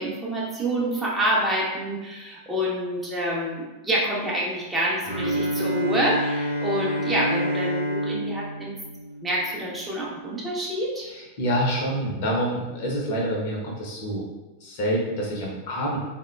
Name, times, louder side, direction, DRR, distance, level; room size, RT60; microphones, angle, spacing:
voice 1, 0.0-8.8 9.2-11.1, right 1 dB, 10° right, -5 dB, 0.6 m, -27 dB
Bowed string instrument, 5.0-9.9, equal, 85° right, 0.6 m, -28 dB
voice 2, 11.0-14.3 14.6-16.0, equal, 50° left, -1 dB, 0.6 m, -27 dB
3.5 x 2.1 x 2.3 m, 1.1 s
figure-of-eight pair, 90°, 0 cm